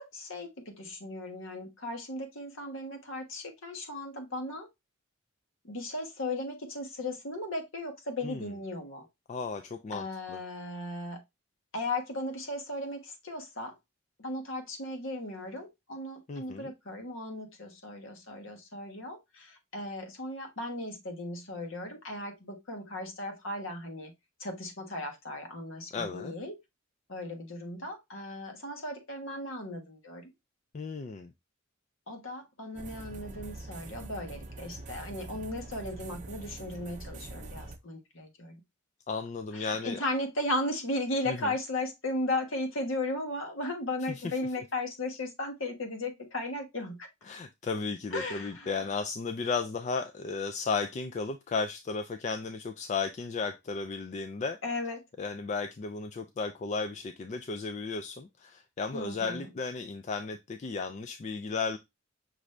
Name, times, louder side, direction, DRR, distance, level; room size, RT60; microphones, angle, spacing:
voice 1, 0.0-4.7 5.6-9.1 9.9-11.2 11.7-13.7 14.2-24.1 24.4-26.5 27.1-30.3 32.1-38.6 39.5-47.1 48.1-48.7 54.6-55.0 58.9-59.5, left 1 dB, 65° left, 1.2 m, -36 dB
voice 2, 9.3-10.4 16.3-16.7 25.9-26.3 30.7-31.3 39.1-40.0 41.3-41.5 44.2-44.4 47.2-54.6 55.2-61.8, left 4 dB, 35° left, 0.3 m, -34 dB
sound 1, 32.8-37.8, right 2 dB, 35° right, 0.5 m, -44 dB
6.0 x 2.6 x 3.1 m
head